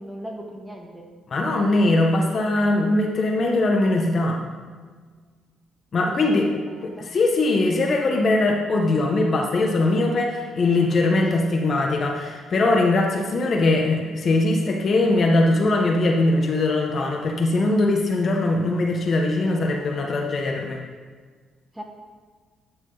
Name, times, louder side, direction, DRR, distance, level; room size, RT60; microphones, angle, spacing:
voice 1, 0.0-1.1 6.1-7.1 11.2-11.5 19.8-19.9 21.7-21.8, equal, 5° right, -1 dB, 1.7 m, -38 dB
voice 2, 1.3-4.4 5.9-6.5 7.0-20.8, left 2 dB, 50° left, 0 dB, 1.2 m, -21 dB
10.5 x 6.3 x 4.0 m, 1.5 s
cardioid pair, 90°, 0 cm